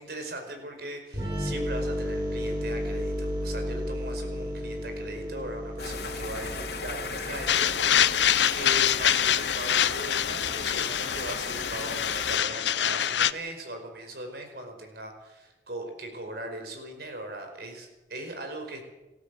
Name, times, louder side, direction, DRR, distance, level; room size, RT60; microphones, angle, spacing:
voice 1, 0.0-18.8, right 1 dB, 60° right, 5 dB, 5.1 m, -39 dB
sound 1, 1.1-8.7, equal, 25° right, 6.7 m, -33 dB
sound 2, 5.8-12.4, left 4 dB, 60° left, 2.8 m, -36 dB
sound 3, 7.5-13.3, left 10 dB, 80° left, 0.7 m, -25 dB
27.5 x 13.0 x 7.8 m, 1.1 s
head